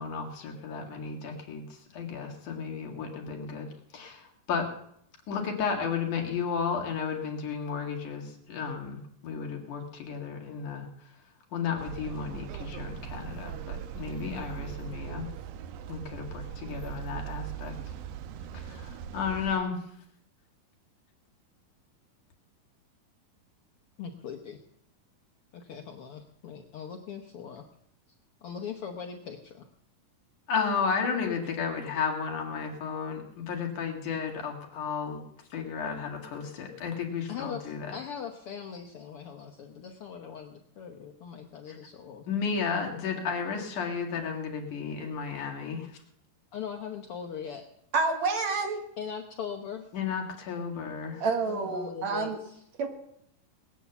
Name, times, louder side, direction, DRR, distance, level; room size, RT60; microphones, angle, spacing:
voice 1, 0.0-4.7 5.3-9.0 9.2-10.9 11.5-15.3 15.9-17.8 18.5-19.8 30.5-35.2 35.5-38.0 41.7-41.8 42.3-45.9 49.9-51.2, left 6 dB, 65° left, 1 dB, 3.4 m, -33 dB
sound 1, 11.8-19.6, right 10 dB, 85° right, 2.4 m, -40 dB
voice 2, 24.0-24.6 25.5-27.6 28.4-29.7 37.3-42.3 46.5-47.7 49.0-49.8 51.5-52.6, left 7 dB, 80° left, 4 dB, 1.2 m, -40 dB
voice 3, 47.9-48.8 51.2-52.4 52.8-52.9, right 4 dB, 60° right, 4 dB, 2.5 m, -28 dB
19.5 x 8.4 x 7.1 m, 0.71 s
omnidirectional pair, 4.0 m